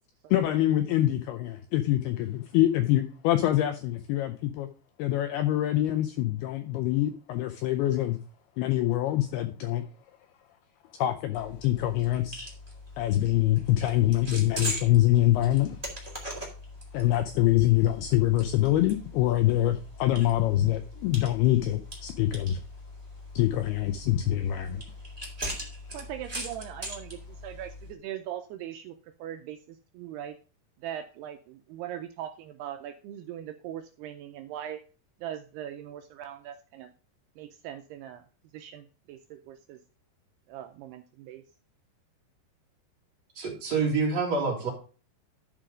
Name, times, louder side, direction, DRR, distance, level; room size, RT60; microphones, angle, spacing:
voice 1, 0.3-4.7 5.0-8.2 8.6-9.8 11.0-12.5 13.0-15.8 16.9-22.6 23.4-24.8, left 14 dB, 80° left, 8 dB, 2.3 m, -25 dB
sound 1, 11.3-27.9, equal, 15° right, 1.5 m, -41 dB
voice 2, 25.9-30.4 30.8-34.9 35.2-36.9 37.4-38.2 38.5-39.8 40.5-41.4, right 11 dB, 80° right, 7 dB, 2.4 m, -40 dB
voice 3, 43.4-44.7, right 4 dB, 45° right, -1 dB, 2.7 m, -27 dB
12.0 x 4.9 x 5.0 m, 0.36 s
omnidirectional pair, 5.2 m